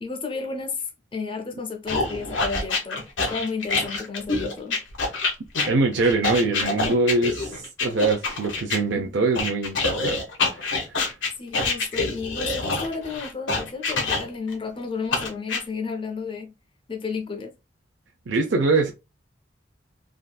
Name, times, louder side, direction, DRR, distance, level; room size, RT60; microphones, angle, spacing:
voice 1, 0.0-4.8 11.4-16.5 16.9-17.5, left 4 dB, 25° left, 0.6 m, -32 dB
sound 1, 1.9-8.8 9.3-14.5 15.1-15.6, left 3 dB, 90° left, 1.1 m, -26 dB
voice 2, 5.7-10.2 10.5-11.0 18.3-18.9, right 3 dB, 75° right, 0.6 m, -23 dB
3.5 x 2.6 x 2.2 m
head